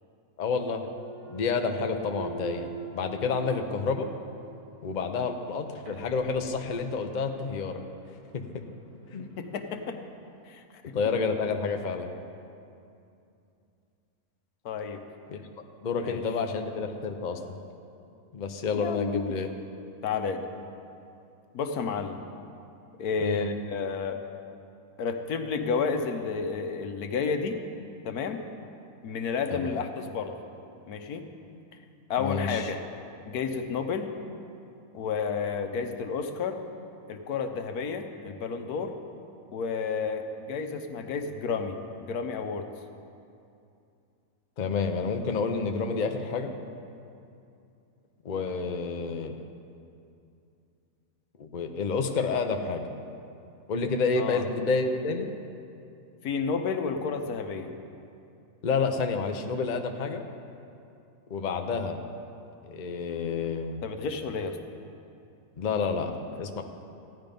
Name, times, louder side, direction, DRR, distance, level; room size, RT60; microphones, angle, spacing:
voice 1, 0.4-0.8 1.3-4.1 4.8-7.8 8.3-8.6 9.1-9.3 10.9-12.1 15.3-15.4 15.8-17.6 18.3-19.5 23.2-23.5 29.5-29.8 32.2-32.7 44.6-46.5 48.2-49.3 51.4-52.8 53.7-55.2 58.6-60.2 61.3-62.0 62.6-63.8 65.6-66.6, left 4 dB, 40° left, 5 dB, 0.7 m, -29 dB
Thump thud, 0.7-4.7 5.2-9.9, right 5 dB, 85° right, 2.0 m, -45 dB
voice 2, 9.4-10.0 10.5-10.6 14.6-15.0 16.0-16.2 18.7-19.3 20.0-20.4 21.5-22.2 23.0-24.2 25.0-27.6 28.0-28.4 29.0-30.3 30.9-31.3 32.1-32.8 33.2-34.1 34.9-36.6 37.1-38.9 39.5-42.7 54.2-54.4 56.2-57.7 63.8-64.6, left 5 dB, 85° left, 6 dB, 1.4 m, -31 dB
15.5 x 10.5 x 5.3 m, 2.6 s
omnidirectional pair, 1.6 m